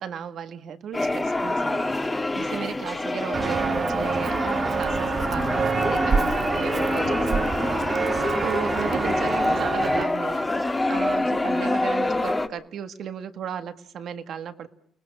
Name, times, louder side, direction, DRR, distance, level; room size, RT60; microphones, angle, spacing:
voice 1, 0.0-8.1 8.4-14.7, right 8 dB, 70° right, 10 dB, 1.6 m, -35 dB
sound 1, 0.9-12.5, left 2 dB, 20° left, 1.8 m, -26 dB
Walk footsteps, 3.3-10.0, right 5 dB, 45° right, 1.1 m, -27 dB
30.0 x 20.0 x 6.2 m, 0.67 s
cardioid pair, 90°, 0 cm